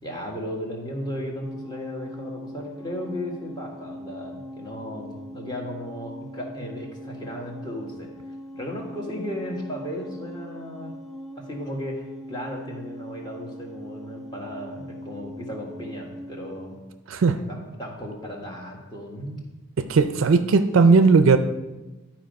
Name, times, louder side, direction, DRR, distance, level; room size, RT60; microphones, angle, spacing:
voice 1, 0.0-8.1 8.5-10.9 11.4-16.8 17.4-19.4, equal, 20° left, 1.4 m, -35 dB
sound 1, 1.4-16.8, equal, ahead, 0.4 m, -40 dB
voice 2, 19.8-21.4, right 4 dB, 65° right, 0.4 m, -17 dB
11.5 x 4.4 x 5.2 m
head